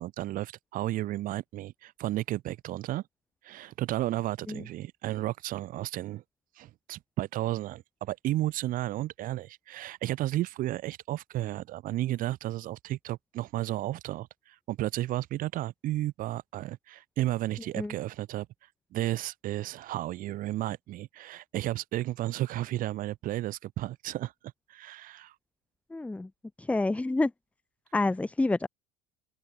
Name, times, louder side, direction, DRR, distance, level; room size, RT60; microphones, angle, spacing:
voice 1, 0.0-3.0 3.4-6.2 6.6-18.5 18.9-24.3 24.7-25.3, right 15 dB, 45° right, 2.4 m, -33 dB
voice 2, 25.9-26.3 26.6-27.3 27.9-28.7, left 2 dB, 5° left, 0.8 m, -28 dB
open air
hypercardioid pair, 75°, 19 cm